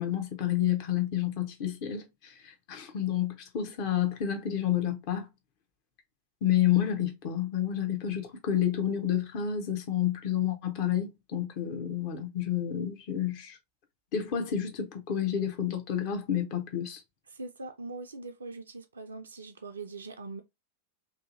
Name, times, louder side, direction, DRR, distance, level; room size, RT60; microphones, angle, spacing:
voice 1, 0.0-5.3 6.4-13.6 14.1-17.0, left 10 dB, 45° left, 0.7 m, -30 dB
voice 2, 17.3-20.4, right 3 dB, 75° right, 0.3 m, -42 dB
2.7 x 2.5 x 2.6 m
figure-of-eight pair, 90°, 0 cm